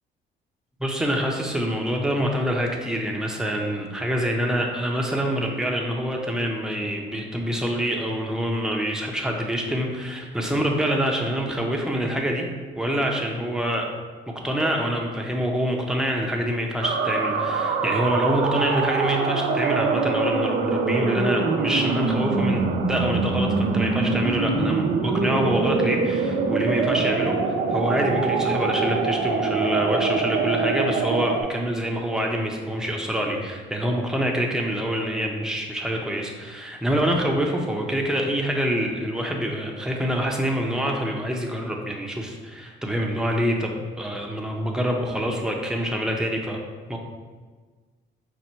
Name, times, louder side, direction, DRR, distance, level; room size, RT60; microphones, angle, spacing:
voice 1, 0.8-12.5 12.8-13.8 14.4-46.6 46.9-47.0, equal, 5° right, 0 dB, 0.7 m, -26 dB
sound 1, 16.8-31.4, right 4 dB, 85° right, 0.5 m, -24 dB
5.4 x 2.2 x 4.4 m, 1.4 s
cardioid pair, 90°, 20 cm